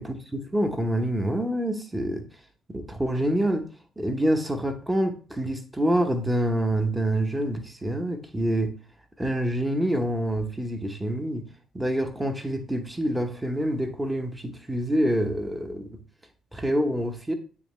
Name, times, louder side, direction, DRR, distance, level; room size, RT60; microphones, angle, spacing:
voice 1, 0.0-2.2 2.7-3.6 4.0-8.7 9.2-11.4 11.7-16.0 16.5-17.3, right 1 dB, 15° right, 1.1 m, -26 dB
8.8 x 3.6 x 3.2 m
figure-of-eight pair, 45°, 0 cm